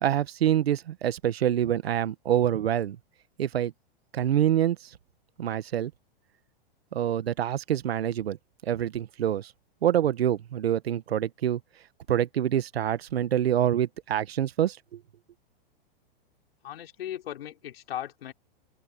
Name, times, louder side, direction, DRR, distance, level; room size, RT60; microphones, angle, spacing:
voice 1, 0.0-3.0 3.4-3.7 4.1-4.9 5.4-5.9 6.9-8.4 8.7-9.5 9.8-11.6 12.1-15.0, right 11 dB, 90° right, 1.4 m, -26 dB
voice 2, 16.6-18.3, left 11 dB, 75° left, 5.3 m, -37 dB
open air
hypercardioid pair, 145°, 30 cm